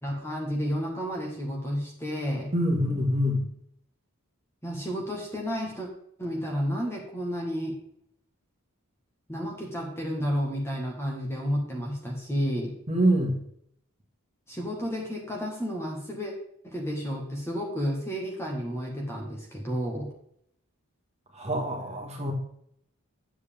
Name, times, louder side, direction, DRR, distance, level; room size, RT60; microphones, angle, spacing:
voice 1, 0.0-2.5 4.6-5.9 6.2-7.8 9.3-12.7 14.5-16.3 16.6-20.1, equal, 10° left, -1 dB, 1.5 m, -31 dB
voice 2, 2.5-3.5 12.9-13.4 21.3-22.3, equal, 30° right, 0 dB, 1.7 m, -25 dB
9.4 x 7.5 x 3.5 m, 0.70 s
head